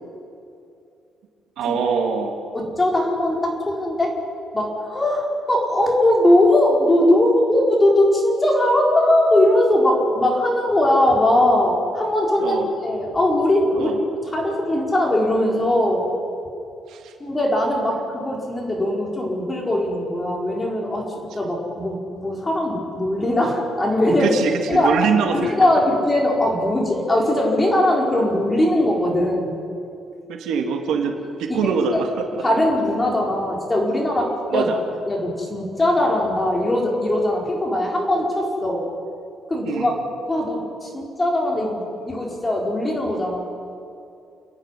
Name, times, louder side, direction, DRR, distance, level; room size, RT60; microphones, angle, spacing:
voice 1, 1.6-2.4 12.4-12.7 13.7-14.0 16.9-17.1 24.2-25.5 30.3-31.1 31.4-32.4 34.5-34.8 39.6-40.0, right 6 dB, 85° right, 2 dB, 2.6 m, -23 dB
voice 2, 2.5-4.2 4.5-12.6 12.8-13.9 14.3-16.1 17.2-21.1 21.3-24.3 24.7-25.0 25.3-29.6 30.9-31.0 31.5-32.0 32.4-34.7 35.1-38.8 39.5-40.0 40.3-43.4, left 1 dB, 15° left, -2 dB, 4.7 m, -20 dB
30.0 x 10.5 x 10.0 m, 2.6 s
cardioid pair, 140°, 0 cm